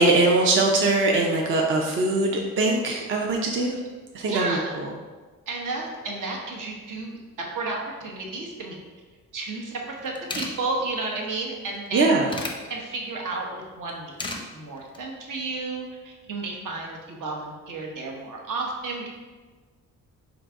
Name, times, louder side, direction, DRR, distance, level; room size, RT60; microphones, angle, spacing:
voice 1, 0.0-3.8 4.1-4.6 11.9-12.3, right 2 dB, 40° right, 0 dB, 0.5 m, -21 dB
voice 2, 4.2-4.7 5.5-8.8 9.3-12.2 12.7-14.1 14.5-19.1, right 3 dB, 65° right, -1 dB, 0.9 m, -32 dB
sound 1, 9.8-9.9 10.1-10.5 11.7-12.6 13.9-14.4 14.8-15.0, left 2 dB, 15° left, 0.5 m, -33 dB
3.8 x 2.6 x 4.6 m, 1.4 s
cardioid pair, 115°, 33 cm